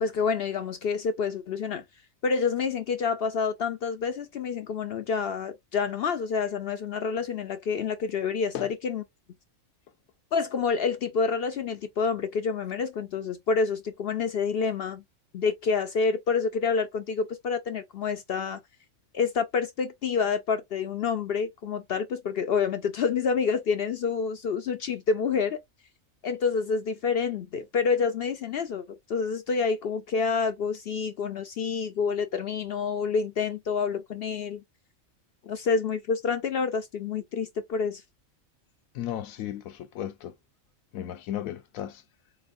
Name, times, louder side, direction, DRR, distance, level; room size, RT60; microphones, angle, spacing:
voice 1, 0.0-1.8 2.2-9.0 10.3-15.0 15.3-18.6 19.1-25.6 26.2-34.6 35.4-38.0, left 5 dB, 65° left, 0.6 m, -28 dB
voice 2, 38.9-40.3 40.9-42.0, left 11 dB, 80° left, 1.1 m, -35 dB
4.1 x 3.1 x 2.5 m
omnidirectional pair, 1.4 m